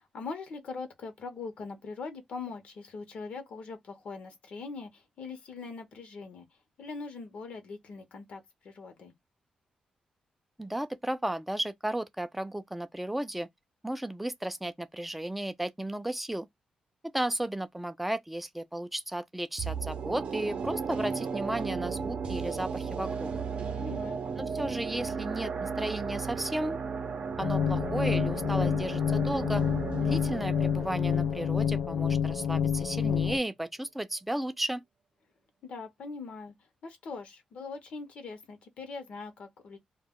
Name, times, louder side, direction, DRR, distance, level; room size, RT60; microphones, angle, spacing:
voice 1, 0.0-9.1 23.7-24.2 35.6-39.8, left 4 dB, 65° left, 0.7 m, -42 dB
voice 2, 10.6-13.5 13.8-16.5 17.1-23.3 24.4-26.8 27.4-29.6 30.0-34.8, right 1 dB, 5° right, 0.3 m, -34 dB
sound 1, 19.6-32.7 33.0-33.1, right 5 dB, 60° right, 0.6 m, -35 dB
sound 2, 27.4-33.4, left 7 dB, 85° left, 0.3 m, -28 dB
2.2 x 2.1 x 3.5 m
wide cardioid pair, 130°, 2 cm